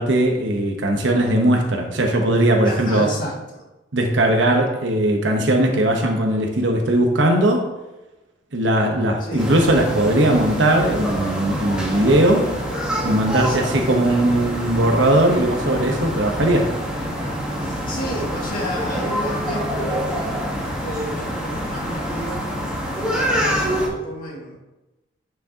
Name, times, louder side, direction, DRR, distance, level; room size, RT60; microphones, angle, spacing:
voice 1, 0.0-3.1 3.9-7.7 8.5-12.5 13.0-16.7, right 1 dB, 75° right, 2 dB, 1.0 m, -19 dB
voice 2, 2.6-3.7 9.2-9.5 13.4-14.0 17.6-20.5 20.8-22.5 22.9-24.6, equal, 50° left, -3 dB, 2.1 m, -32 dB
sound 1, 9.4-23.9, equal, 5° right, 1.4 m, -26 dB
9.1 x 6.2 x 2.9 m, 1.0 s
head